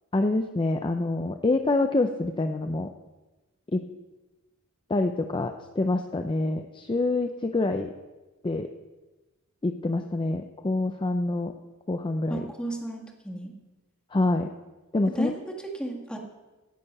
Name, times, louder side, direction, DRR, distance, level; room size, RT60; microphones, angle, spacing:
voice 1, 0.1-2.9 3.7-3.8 4.9-7.9 8.4-8.7 9.6-11.5 11.9-12.4 14.1-14.5 14.9-15.3, left 2 dB, 20° left, 6 dB, 0.5 m, -26 dB
voice 2, 12.3-13.5 15.1-16.2, right 1 dB, 5° left, 0 dB, 1.6 m, -34 dB
17.5 x 6.7 x 5.4 m, 1.2 s
head